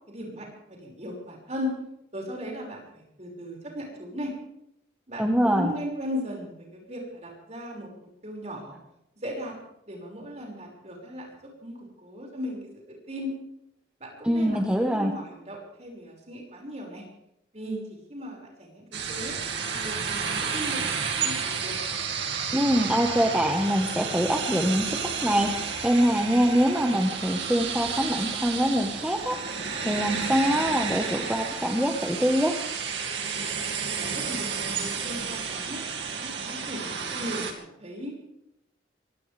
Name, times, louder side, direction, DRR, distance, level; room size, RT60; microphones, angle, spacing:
voice 1, 0.1-1.7 2.1-4.3 5.1-8.8 9.2-9.5 9.9-13.3 14.0-14.6 14.9-17.0 17.5-19.4 19.7-21.7 33.9-38.1, left 1 dB, 40° right, -1 dB, 5.9 m, -37 dB
voice 2, 5.2-5.7 14.2-15.1 22.5-25.0 25.2-29.3 29.8-32.5, equal, 5° right, 1 dB, 1.4 m, -24 dB
sound 1, 18.9-37.5, right 6 dB, 75° right, 2.2 m, -31 dB
23.5 x 17.5 x 3.5 m, 0.78 s
head